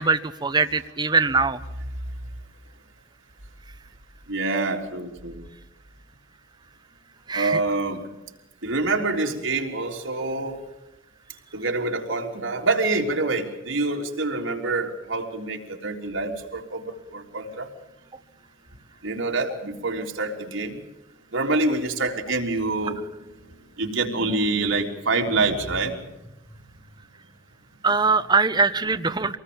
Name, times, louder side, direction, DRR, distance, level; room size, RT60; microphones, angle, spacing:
voice 1, 0.0-1.6 7.3-7.6 27.8-29.4, right 4 dB, 20° right, 9 dB, 0.8 m, -22 dB
voice 2, 4.3-5.5 7.3-8.0 8.6-10.6 11.5-17.7 19.0-20.8 21.3-23.0 23.8-26.0 29.2-29.3, right 3 dB, 80° right, 1 dB, 3.5 m, -26 dB
25.5 x 19.5 x 7.0 m, 0.96 s
head